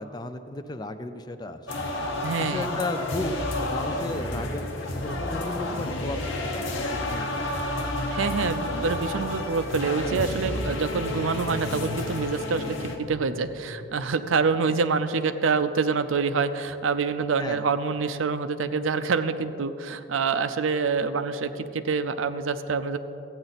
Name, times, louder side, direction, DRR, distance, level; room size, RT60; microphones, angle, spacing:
voice 1, 0.0-1.6 2.4-4.7 5.0-7.4 14.7-14.8 17.4-17.6, left 2 dB, 20° left, 9 dB, 0.4 m, -34 dB
sound 1, 1.7-13.0, left 1 dB, 75° left, 1.2 m, -30 dB
voice 2, 2.2-2.7 8.1-23.0, right 5 dB, 80° right, 10 dB, 0.5 m, -26 dB
sound 2, 10.8-14.9, left 4 dB, 60° left, 0.8 m, -42 dB
14.0 x 8.9 x 4.1 m, 2.9 s
head